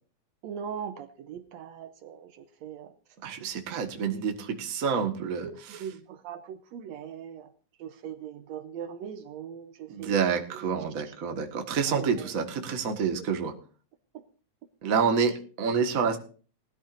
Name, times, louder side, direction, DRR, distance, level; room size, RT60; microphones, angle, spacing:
voice 1, 0.4-3.0 5.4-7.5 7.8-10.2 10.5-11.1 11.9-12.3 14.1-14.3, right 8 dB, 75° right, 10 dB, 1.9 m, -40 dB
voice 2, 3.2-5.8 9.9-13.5 14.8-16.2, right 6 dB, 35° right, 4 dB, 1.5 m, -28 dB
19.5 x 13.0 x 2.6 m, 0.38 s
omnidirectional pair, 3.4 m